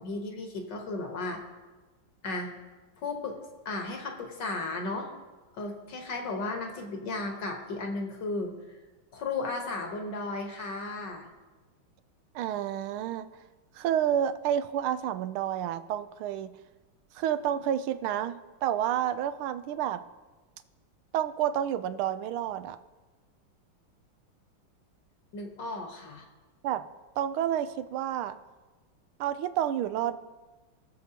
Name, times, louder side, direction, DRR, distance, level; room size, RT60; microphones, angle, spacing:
voice 1, 0.0-1.4 2.2-2.5 3.0-3.4 3.7-5.1 5.5-8.5 9.1-11.3 25.3-26.3, left 3 dB, 60° left, 2 dB, 1.8 m, -34 dB
voice 2, 12.3-13.3 13.7-16.5 17.1-20.0 21.1-22.8 26.6-26.8 27.2-28.4 29.2-30.2, right 10 dB, 90° right, 11 dB, 1.5 m, -29 dB
22.0 x 7.5 x 2.9 m, 1.2 s
omnidirectional pair, 2.3 m